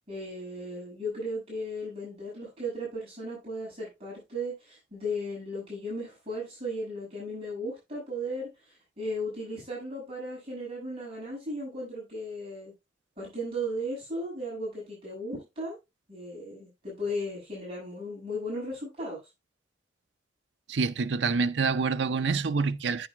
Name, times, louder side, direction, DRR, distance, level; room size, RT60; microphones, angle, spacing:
voice 1, 0.1-12.7 13.2-15.8 16.1-19.2, equal, 35° right, 6.6 m, -36 dB
voice 2, 20.7-23.1, right 4 dB, 75° right, 0.6 m, -27 dB
9.6 x 8.9 x 2.4 m
head